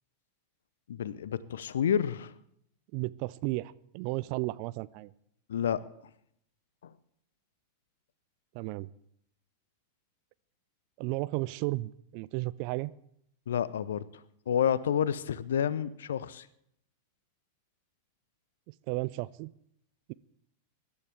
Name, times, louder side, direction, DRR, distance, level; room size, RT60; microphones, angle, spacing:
voice 1, 0.9-2.3 5.5-5.8 6.8-6.9 13.5-14.0 14.5-16.5, left 8 dB, 65° left, 19 dB, 0.6 m, -29 dB
voice 2, 2.9-5.1 8.5-8.9 11.0-12.9 18.9-19.5, right 21 dB, 45° right, 18 dB, 0.4 m, -33 dB
24.0 x 12.0 x 3.4 m, 0.73 s
figure-of-eight pair, 90°, 0 cm